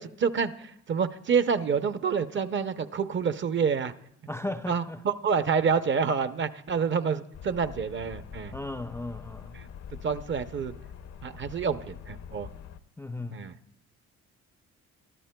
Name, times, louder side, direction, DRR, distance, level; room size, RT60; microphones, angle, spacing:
voice 1, 0.0-3.9 4.7-8.5 9.6-9.7 10.0-10.7 11.2-12.5 13.3-13.5, right 6 dB, 40° right, 0.6 m, -28 dB
voice 2, 4.3-5.0 8.5-9.6 13.0-13.4, left 2 dB, 10° left, 0.4 m, -36 dB
sound 1, 7.3-12.8, left 8 dB, 60° left, 0.6 m, -44 dB
23.0 x 13.0 x 2.2 m
cardioid pair, 90°, 30 cm